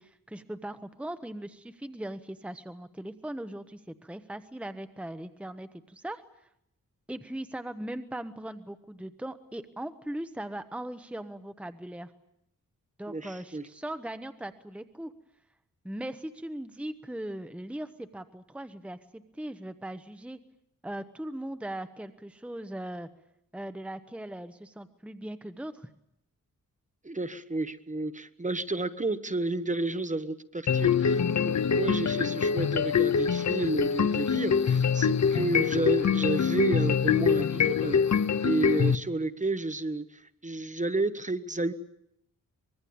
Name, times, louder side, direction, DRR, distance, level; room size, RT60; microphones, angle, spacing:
voice 1, 0.0-6.2 7.1-12.1 13.0-15.1 15.8-20.4 20.8-23.1 23.5-25.9, right 1 dB, 5° right, 10 dB, 1.0 m, -39 dB
voice 2, 13.1-13.6 27.0-41.7, right 2 dB, 25° right, 11 dB, 1.2 m, -31 dB
sound 1, 30.7-39.0, left 6 dB, 55° left, 0.9 m, -25 dB
24.5 x 22.0 x 8.7 m, 0.76 s
wide cardioid pair, 135°, 33 cm